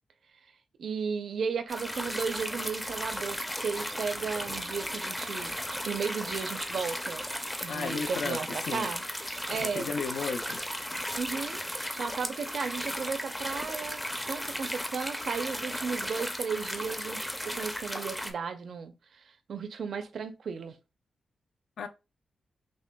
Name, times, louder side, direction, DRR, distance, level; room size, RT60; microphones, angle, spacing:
voice 1, 0.8-7.2 7.6-9.0 9.5-9.9 11.1-19.2 19.5-20.7, right 5 dB, 60° right, 0.5 m, -35 dB
sound 1, 1.7-18.3, equal, 5° left, 0.5 m, -35 dB
voice 2, 7.7-8.4 8.7-8.9 9.5-10.6 21.8-21.9, left 5 dB, 75° left, 0.4 m, -34 dB
6.0 x 2.2 x 2.2 m
wide cardioid pair, 165°, 0 cm